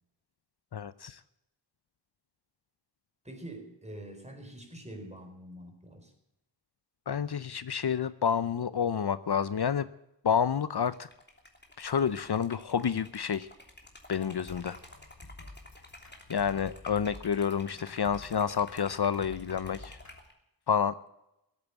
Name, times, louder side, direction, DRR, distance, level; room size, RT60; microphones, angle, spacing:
voice 1, 0.7-1.2 7.1-9.9 10.2-11.1 11.8-13.5 14.1-14.8 16.3-20.0 20.7-20.9, left 7 dB, 65° left, 15 dB, 0.7 m, -29 dB
voice 2, 3.2-6.1, right 1 dB, 15° right, 4 dB, 4.3 m, -45 dB
Liquid, 10.9-20.3, left 1 dB, 25° left, 3.1 m, -52 dB
sound 1, 14.5-20.2, left 2 dB, 40° left, 3.4 m, -51 dB
17.0 x 8.9 x 8.2 m, 0.86 s
wide cardioid pair, 65°, 43 cm